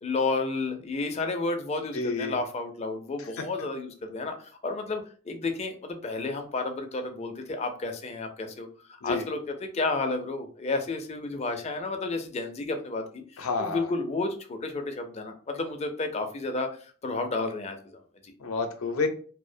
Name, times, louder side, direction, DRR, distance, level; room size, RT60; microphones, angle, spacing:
voice 1, 0.0-8.7 9.0-18.3, left 3 dB, 30° left, 5 dB, 0.4 m, -31 dB
voice 2, 1.9-2.3 9.0-9.2 13.4-13.9 18.4-19.1, left 4 dB, 85° left, 6 dB, 0.5 m, -29 dB
2.4 x 2.0 x 2.6 m, 0.42 s
head